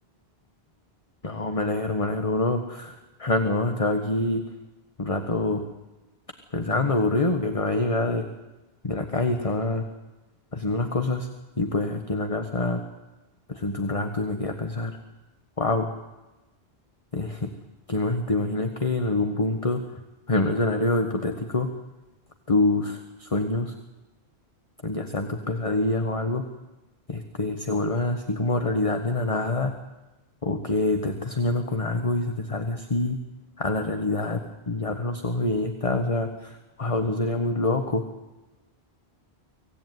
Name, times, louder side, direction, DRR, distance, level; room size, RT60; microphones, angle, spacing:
voice 1, 1.2-4.4 5.0-5.6 6.5-8.3 8.8-9.8 10.5-11.3 11.6-12.8 13.5-15.0 15.6-15.9 17.1-17.5 17.9-19.8 20.3-21.7 22.5-23.7 24.8-26.4 27.1-29.7 30.4-33.2 33.6-38.0, left 2 dB, 30° left, 6 dB, 1.5 m, -26 dB
24.5 x 17.0 x 9.4 m, 1.1 s
omnidirectional pair, 1.1 m